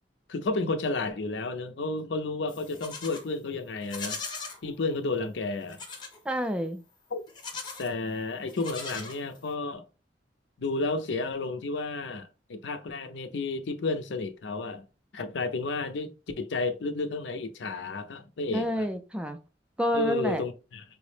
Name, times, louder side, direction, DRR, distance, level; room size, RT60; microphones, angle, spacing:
voice 1, 0.3-4.2 4.6-5.8 7.1-7.2 7.8-9.8 10.6-14.8 15.1-18.9 19.9-20.8, left 3 dB, 80° left, 0.5 m, -32 dB
Livestock farm animals working animals, 2.5-3.3 3.8-4.6 5.7-6.2 7.3-7.9 8.5-9.5, left 4 dB, 25° left, 0.7 m, -39 dB
voice 2, 6.3-6.8 18.5-19.4 19.8-20.4, equal, 5° right, 0.3 m, -28 dB
4.6 x 2.0 x 3.2 m
head